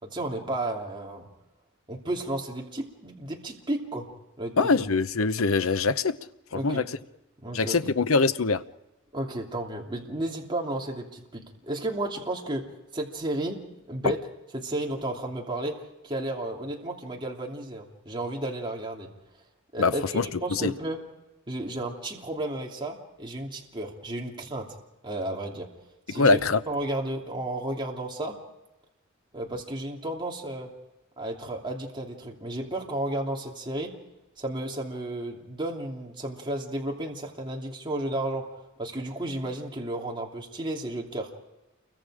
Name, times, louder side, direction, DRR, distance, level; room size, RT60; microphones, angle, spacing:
voice 1, 0.0-1.3 1.9-4.1 4.4-4.8 6.5-6.8 7.4-7.9 9.1-12.6 12.9-13.6 13.9-14.2 14.5-15.8 16.0-19.1 19.7-21.0 21.5-24.7 25.0-25.7 26.1-26.4 26.7-28.4 29.3-30.7 31.2-33.9 34.4-41.3, right 1 dB, 25° right, 2.9 m, -33 dB
voice 2, 4.6-6.2 6.5-6.8 7.5-8.6 14.0-14.1 19.8-20.3 20.5-20.7 26.1-26.6, left 4 dB, 80° left, 0.8 m, -23 dB
29.0 x 23.5 x 5.0 m
head